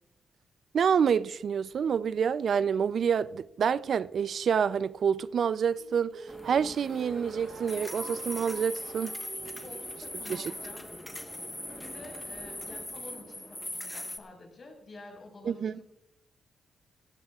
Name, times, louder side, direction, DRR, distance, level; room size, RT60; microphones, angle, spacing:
voice 1, 0.7-9.1 10.3-10.4 15.5-15.8, right 7 dB, 60° right, 0.4 m, -28 dB
sound 1, 5.8-10.3, right 7 dB, 90° right, 1.0 m, -47 dB
sound 2, 6.3-14.2, left 1 dB, 10° left, 1.2 m, -40 dB
voice 2, 9.6-10.9 11.8-15.8, left 2 dB, 45° left, 5.4 m, -49 dB
17.5 x 16.0 x 2.4 m
cardioid pair, 95°, 0 cm